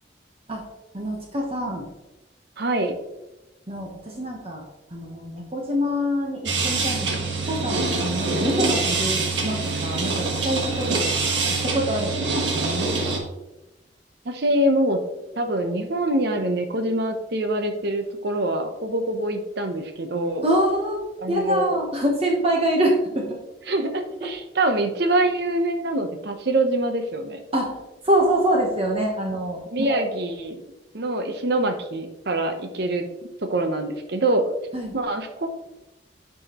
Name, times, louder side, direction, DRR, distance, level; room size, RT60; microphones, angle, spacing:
voice 1, 0.9-1.9 3.7-4.6 4.9-11.3 11.6-13.2 20.4-21.0 21.3-23.4 27.5-27.7 28.0-29.6 29.9-30.0 34.7-34.9, equal, 35° right, 0 dB, 1.0 m, -25 dB
voice 2, 2.6-2.9 14.2-15.0 15.4-20.5 21.2-21.8 23.7-27.4 29.7-30.6 30.9-33.1 33.4-34.4 34.9-35.5, right 1 dB, 65° right, 6 dB, 0.9 m, -24 dB
sound 1, 6.5-13.2, right 3 dB, 90° right, 1.4 m, -25 dB
8.9 x 5.0 x 3.0 m, 0.98 s
head